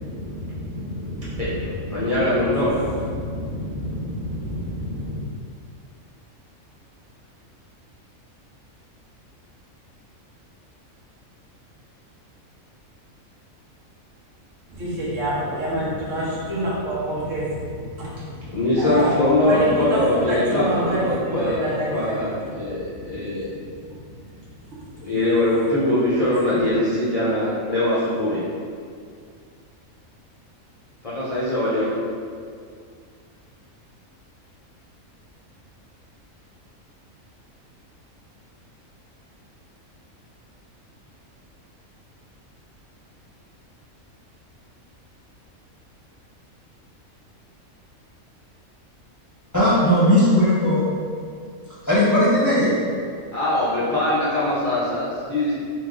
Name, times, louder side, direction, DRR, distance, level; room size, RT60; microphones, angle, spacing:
voice 1, 0.0-5.2 14.7-19.1 19.4-22.2 22.7-23.2 26.5-26.6, equal, 65° right, -7 dB, 1.3 m, -28 dB
voice 2, 1.9-2.9 18.5-23.5 25.0-28.4 31.0-32.0 53.3-55.5, left 1 dB, 40° left, -10 dB, 0.5 m, -22 dB
voice 3, 49.5-50.8 51.9-52.7, left 1 dB, 15° left, -11 dB, 1.0 m, -17 dB
3.6 x 3.0 x 3.7 m, 2.2 s
omnidirectional pair, 1.4 m